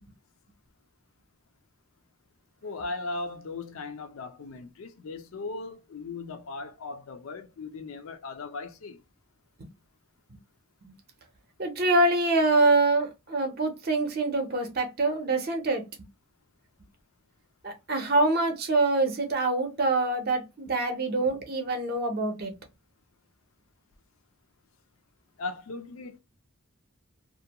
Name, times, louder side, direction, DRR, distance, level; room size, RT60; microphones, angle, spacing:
voice 1, 2.6-9.0 25.4-26.2, left 3 dB, 65° left, 0.4 m, -38 dB
voice 2, 11.6-15.8 17.6-22.5, right 2 dB, 45° right, 0.6 m, -25 dB
2.4 x 2.1 x 2.8 m
head